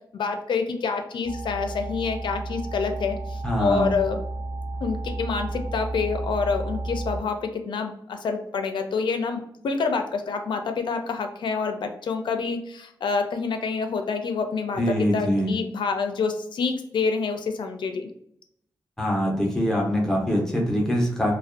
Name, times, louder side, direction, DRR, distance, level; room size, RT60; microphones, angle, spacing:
voice 1, 0.1-4.2 4.8-18.1, left 5 dB, 80° left, 6 dB, 0.4 m, -27 dB
sound 1, 1.2-7.2, right 2 dB, 50° right, 0.8 m, -32 dB
voice 2, 3.4-3.9 14.8-15.5 19.0-21.3, equal, 5° left, -2 dB, 0.5 m, -23 dB
2.5 x 2.1 x 2.4 m, 0.73 s
wide cardioid pair, 170°, 8 cm